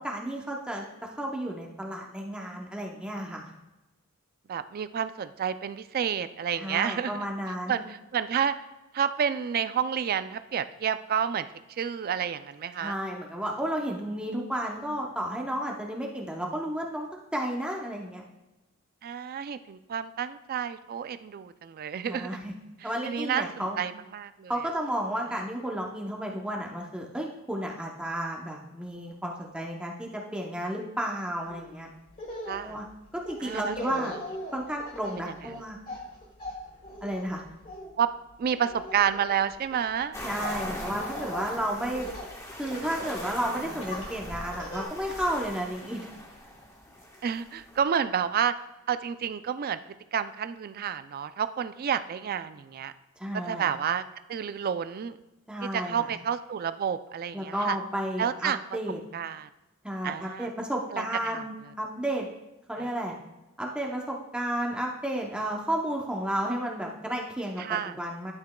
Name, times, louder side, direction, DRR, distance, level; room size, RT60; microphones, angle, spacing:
voice 1, 0.0-3.5 6.5-7.8 12.8-18.2 22.1-22.5 22.8-23.8 24.5-31.9 32.6-32.9 33.1-34.2 34.5-35.8 37.0-37.4 40.2-42.1 42.6-46.1 53.2-53.7 55.5-56.1 57.3-59.0 59.8-62.3 62.7-63.1 63.6-68.3, right 1 dB, 5° right, -1 dB, 0.7 m, -32 dB
voice 2, 4.5-7.2 7.7-8.6 8.9-11.5 11.8-13.0 19.0-22.3 22.8-24.5 32.5-32.8 33.4-34.2 35.2-35.3 38.0-38.1 38.4-40.2 47.2-48.5 48.9-49.8 50.1-52.9 53.3-54.0 54.3-55.2 55.7-57.8 58.2-58.6 59.1-59.5 60.0-60.5 60.9-61.4 62.8-62.9 67.6-68.0, right 8 dB, 45° right, 12 dB, 0.3 m, -30 dB
Laughter, 31.5-31.7 32.1-42.3 42.6-43.4 43.8-44.8, left 1 dB, 40° left, 2.1 m, -40 dB
sound 1, 40.1-47.8, equal, 15° left, 1.2 m, -40 dB
11.5 x 6.0 x 2.2 m, 1.0 s
head